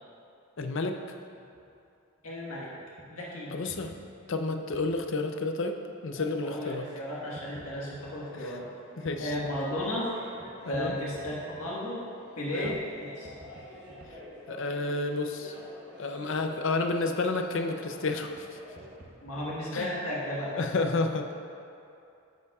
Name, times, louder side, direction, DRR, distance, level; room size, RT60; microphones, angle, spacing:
voice 1, 0.6-1.0 3.5-3.9 4.3-5.8 6.0-6.9 8.4-8.5 9.0-9.3 10.7-11.0 12.5-12.8 14.5-15.5 16.0-18.3 19.7-19.9 20.6-21.3, left 3 dB, 60° left, 5 dB, 0.5 m, -30 dB
sound 1, 1.3-1.7 2.2-2.3 3.0-3.1 3.7-5.0 6.2-6.3 6.7-6.8 7.3-8.1 8.9-9.9 10.4-11.7 12.3-12.4 12.6-12.8 13.1-14.1 14.5-14.6 16.4-16.6 18.3-18.4 18.7-19.9, right 1 dB, 40° right, 1.0 m, -51 dB
voice 2, 2.2-2.7 3.1-3.6 6.4-8.7 9.2-10.1 10.6-12.0 12.4-13.3 19.2-20.6, left 1 dB, 85° left, -6 dB, 1.5 m, -34 dB
sound 2, 6.1-19.0, equal, 20° right, 1.3 m, -49 dB
10.0 x 8.1 x 2.4 m, 2.6 s
head